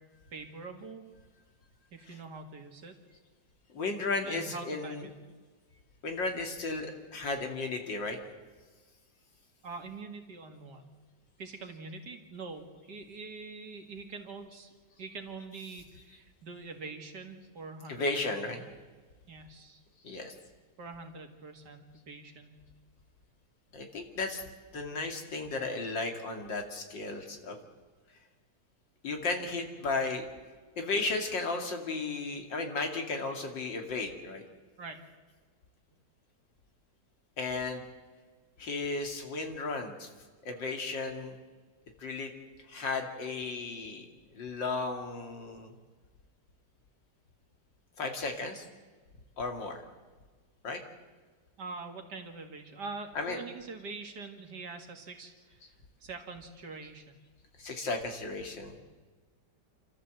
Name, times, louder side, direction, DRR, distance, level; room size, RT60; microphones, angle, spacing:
voice 1, 0.3-1.1 1.9-2.9 4.3-5.1 9.6-10.8 11.4-14.7 15.0-18.7 19.3-19.8 20.8-22.6 34.8-35.0 51.6-57.2, right 4 dB, 65° right, 4 dB, 2.6 m, -44 dB
voice 2, 3.7-5.1 6.0-8.2 17.9-18.6 20.0-20.3 23.7-24.4 24.7-27.6 29.0-30.3 30.8-34.4 37.4-37.8 38.6-40.1 40.4-41.4 42.0-42.3 42.7-44.1 44.3-45.7 48.0-48.6 49.4-49.8 50.6-50.8 53.1-53.4 57.6-58.8, left 3 dB, 85° left, 4 dB, 3.1 m, -34 dB
28.5 x 13.5 x 7.8 m, 1.4 s
omnidirectional pair, 1.9 m